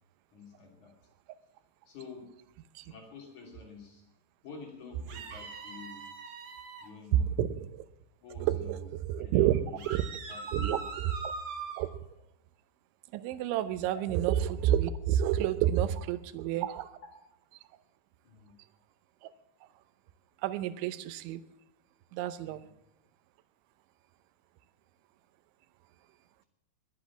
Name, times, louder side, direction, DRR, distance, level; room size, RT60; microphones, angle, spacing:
voice 1, 0.3-0.9 1.9-2.3 2.8-4.0 4.4-6.1 6.8-7.3 8.2-8.9 9.2-9.8 10.3-10.9 13.9-14.0 17.0-17.1 18.2-18.6 22.4-22.6, left 5 dB, 45° left, 1 dB, 3.9 m, -49 dB
sound 1, 5.1-6.9 9.8-11.8, right 4 dB, 50° right, 1.7 m, -41 dB
voice 2, 7.4-7.9 8.5-9.6 9.9-10.0 10.5-11.1 11.8-11.9 13.1-16.9 20.4-21.4 22.1-22.6, right 11 dB, 90° right, 15 dB, 3.2 m, -29 dB
20.5 x 8.6 x 7.2 m, 0.84 s
omnidirectional pair, 5.2 m